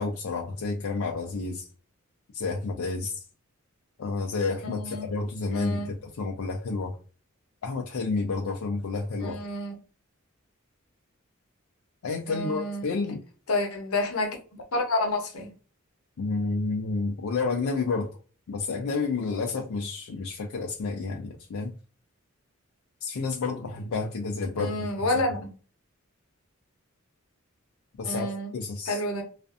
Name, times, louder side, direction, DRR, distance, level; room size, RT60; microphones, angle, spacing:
voice 1, 0.0-1.7 2.3-3.2 4.0-6.9 7.6-9.4 12.0-13.2 16.2-18.1 18.5-21.7 23.0-24.7 28.0-28.3 28.5-29.0, left 4 dB, 70° left, 0.4 m, -30 dB
voice 2, 4.6-5.1 5.5-5.9 9.2-9.8 12.3-12.8 13.5-15.5 24.6-25.5 28.0-28.5 28.9-29.2, left 2 dB, 90° left, 0.8 m, -29 dB
2.5 x 2.4 x 2.4 m
head